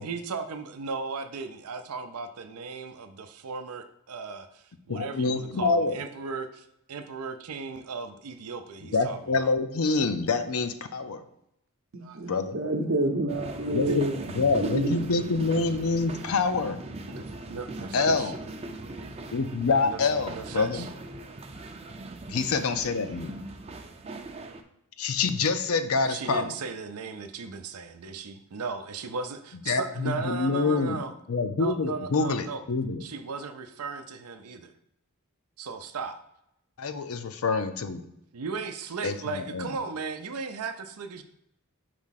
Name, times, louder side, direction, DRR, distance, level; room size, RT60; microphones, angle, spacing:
voice 1, 0.0-9.5 13.9-14.2 17.1-18.3 19.8-20.0 20.3-20.9 26.0-31.1 31.6-32.6 33.0-34.7 35.6-36.2 38.3-41.2, right 4 dB, 90° right, 0.5 m, -36 dB
voice 2, 4.9-6.0 8.9-11.2 12.3-12.6 13.7-14.1 14.3-16.8 17.9-18.4 19.3-20.9 22.3-23.4 25.0-26.6 29.7-31.0 31.3-33.0 36.8-38.0 39.0-39.7, left 4 dB, 75° left, 0.6 m, -26 dB
voice 3, 11.9-14.2 14.6-14.9, right 1 dB, 60° right, 0.8 m, -28 dB
sound 1, 13.3-24.6, right 2 dB, 25° right, 0.5 m, -40 dB
5.0 x 3.6 x 5.7 m
head